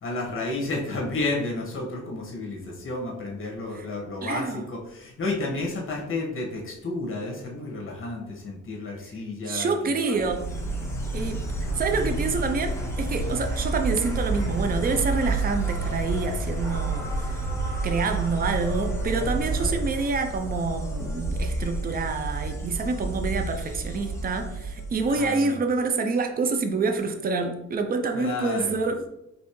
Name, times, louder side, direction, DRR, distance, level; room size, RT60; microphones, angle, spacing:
voice 1, 0.0-10.2 11.5-11.8 19.6-19.7 25.0-25.6 28.1-28.8, left 2 dB, 45° left, -1 dB, 1.4 m, -32 dB
voice 2, 4.2-4.6 9.4-10.5 11.1-11.4 11.8-17.3 17.8-29.1, right 4 dB, 30° right, 5 dB, 0.6 m, -27 dB
Insect, 10.2-25.3, right 2 dB, 10° left, 1.2 m, -29 dB
4.2 x 3.4 x 3.1 m, 0.83 s
cardioid pair, 90°, 30 cm